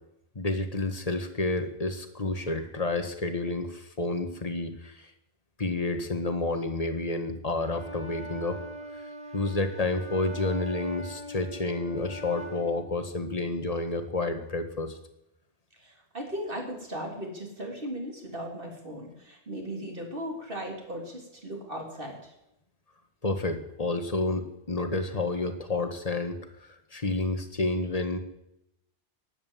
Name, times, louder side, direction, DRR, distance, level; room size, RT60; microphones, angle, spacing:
voice 1, 0.4-5.1 5.6-8.6 8.9-9.0 9.3-15.0 23.2-28.2, left 2 dB, 35° left, 7 dB, 1.8 m, -30 dB
Wind instrument woodwind instrument, 7.6-12.8, right 1 dB, 5° right, 2.5 m, -42 dB
voice 2, 15.8-22.3, equal, 55° right, 1 dB, 4.0 m, -37 dB
16.5 x 10.5 x 7.6 m, 0.84 s
omnidirectional pair, 1.1 m